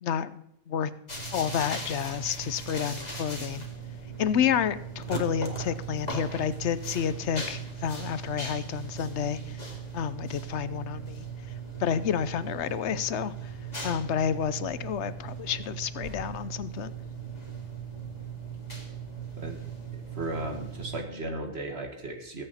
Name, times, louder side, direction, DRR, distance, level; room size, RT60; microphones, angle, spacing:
voice 1, 0.0-0.9 1.3-3.6 4.2-9.6 9.9-11.3 11.8-13.5 13.8-16.9, left 8 dB, 60° left, 15 dB, 0.9 m, -30 dB
sound 1, 1.1-21.0, right 5 dB, 30° left, 2.5 m, -38 dB
voice 2, 19.9-22.4, right 2 dB, 50° right, 3 dB, 1.9 m, -35 dB
21.0 x 8.8 x 4.2 m, 0.77 s
omnidirectional pair, 1.4 m